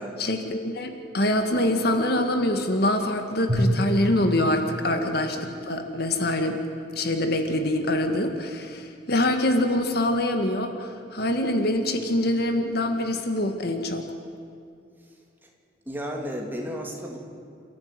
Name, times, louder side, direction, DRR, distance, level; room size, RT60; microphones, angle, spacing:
voice 1, 0.2-6.6 7.0-14.1, left 1 dB, 55° left, 6 dB, 1.9 m, -25 dB
Drum, 3.5-5.9, equal, 35° right, 6.9 m, -28 dB
voice 2, 4.8-5.1 15.9-17.2, equal, 10° right, 0 dB, 2.8 m, -33 dB
29.0 x 14.0 x 9.6 m, 2.4 s
head